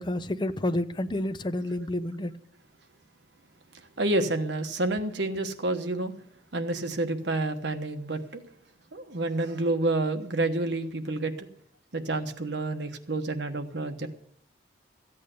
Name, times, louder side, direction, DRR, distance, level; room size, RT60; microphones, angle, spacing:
voice 1, 0.0-2.3, left 1 dB, 25° left, 0.5 m, -29 dB
voice 2, 1.8-2.3 4.0-6.2 6.5-8.4 8.9-11.5 11.9-14.1, right 2 dB, 70° right, 1.2 m, -29 dB
14.5 x 8.5 x 6.7 m
head